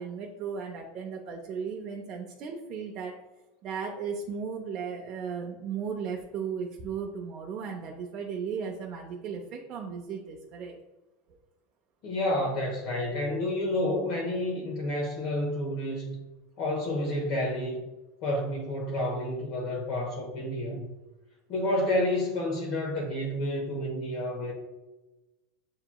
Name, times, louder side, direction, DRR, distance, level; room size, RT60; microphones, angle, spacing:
voice 1, 0.0-3.1 3.6-10.8, right 6 dB, 40° right, 0 dB, 0.5 m, -36 dB
voice 2, 12.0-16.2 16.6-17.8 18.2-20.9 21.5-24.5, left 1 dB, 50° left, -2 dB, 0.9 m, -30 dB
7.1 x 2.9 x 2.2 m, 1.0 s
supercardioid pair, 145°, 0 cm